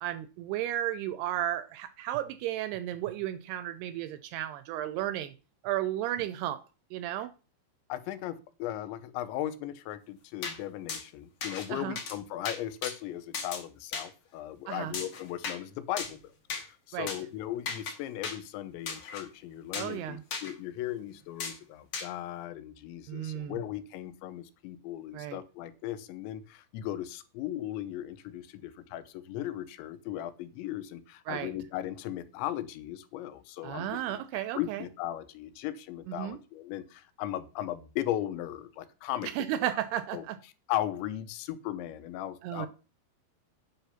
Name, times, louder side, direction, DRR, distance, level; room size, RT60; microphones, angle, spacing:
voice 1, 0.0-5.3 5.6-6.6 6.9-7.3 11.7-12.0 14.7-15.0 16.9-17.1 19.7-20.2 23.1-23.6 25.1-25.4 31.3-31.5 33.6-34.8 36.1-36.4 39.2-40.4 42.4-42.7, right 12 dB, 80° right, 13 dB, 2.4 m, -33 dB
voice 2, 7.9-16.2 16.6-34.2 34.6-39.3 39.6-39.7 40.1-40.2 40.7-42.7, left 13 dB, 85° left, 12 dB, 3.1 m, -37 dB
sound 1, 10.4-10.6 10.9-11.0 11.4-11.7 12.0-12.2 12.4-12.9 13.3-13.6 13.9-14.1 14.9-15.6 16.0-16.2 16.5-16.6 17.1-17.2 17.7-17.9 18.2-18.4 18.9-19.2 19.7-19.9 20.3-20.5 21.4-21.6 21.9-22.1, left 5 dB, 45° left, 2.3 m, -36 dB
9.2 x 5.9 x 5.7 m, 0.34 s
omnidirectional pair, 5.1 m